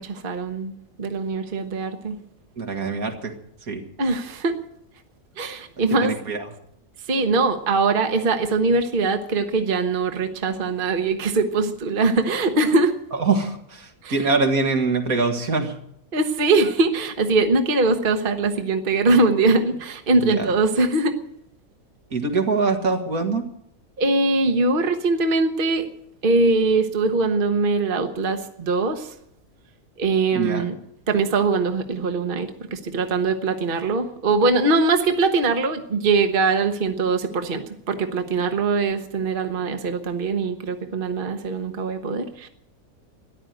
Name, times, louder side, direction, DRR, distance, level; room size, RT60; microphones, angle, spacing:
voice 1, 0.0-2.2 4.0-4.5 5.4-6.1 7.1-13.0 14.0-14.3 16.1-21.2 24.0-25.9 26.2-29.1 30.0-30.7 31.1-42.5, right 3 dB, 35° right, 7 dB, 1.3 m, -22 dB
voice 2, 2.6-3.3 3.7-3.8 5.9-6.4 13.1-15.7 20.2-20.5 22.1-23.5 30.3-30.7, right 4 dB, 70° right, 4 dB, 2.4 m, -23 dB
14.0 x 11.0 x 9.1 m, 0.74 s
omnidirectional pair, 1.6 m